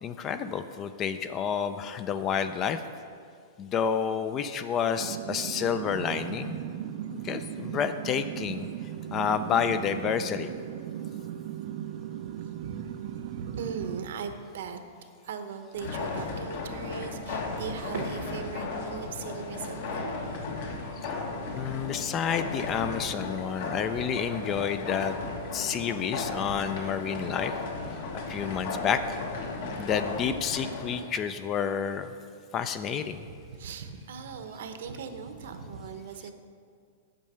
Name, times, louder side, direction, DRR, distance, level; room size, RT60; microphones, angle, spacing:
voice 1, 0.0-2.8 3.6-6.6 7.1-8.7 9.1-10.5 21.0-21.2 21.5-25.1 25.5-27.5 28.3-29.2 29.8-32.1 32.5-33.3, left 7 dB, 20° left, 11 dB, 0.4 m, -29 dB
sound 1, 5.0-14.1, right 10 dB, 50° right, 0.4 m, -37 dB
voice 2, 12.6-14.8 15.2-20.1 21.5-21.7 33.3-36.3, right 6 dB, 65° right, 8 dB, 0.9 m, -39 dB
sound 2, 15.7-31.0, left 3 dB, 50° left, 1.2 m, -35 dB
8.8 x 6.4 x 6.8 m, 2.2 s
supercardioid pair, 165°, 0 cm